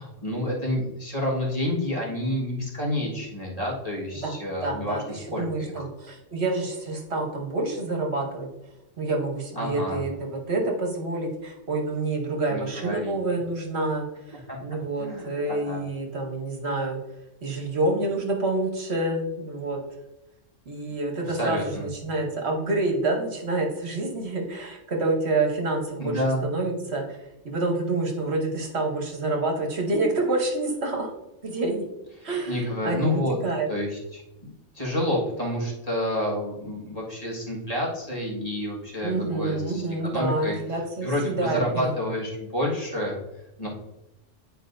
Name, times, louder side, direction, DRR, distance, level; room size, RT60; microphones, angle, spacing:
voice 1, 0.0-5.8 9.5-10.0 12.5-13.1 14.5-14.6 15.0-15.8 21.3-21.9 26.0-26.4 32.5-33.4 33.7-39.8 40.1-40.6 41.0-43.2 43.6-43.7, left 1 dB, 30° left, -4 dB, 1.7 m, -29 dB
voice 2, 4.6-8.5 9.0-17.0 17.4-19.8 20.7-27.2 27.4-31.1 31.4-31.8 32.2-33.7 39.0-41.9, right 2 dB, 60° right, 1 dB, 1.3 m, -28 dB
9.8 x 4.7 x 2.6 m, 0.92 s
omnidirectional pair, 1.3 m